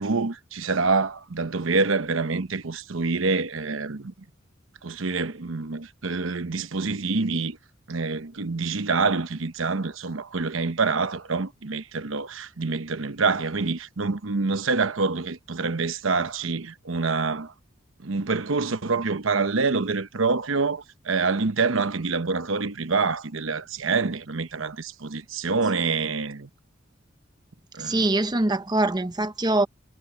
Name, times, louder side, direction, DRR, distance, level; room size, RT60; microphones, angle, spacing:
voice 1, 0.0-4.1 4.8-7.6 7.9-17.5 18.0-26.5 27.7-28.1, right 4 dB, 85° right, 1.0 m, -26 dB
voice 2, 27.8-29.7, right 2 dB, 20° right, 0.8 m, -23 dB
head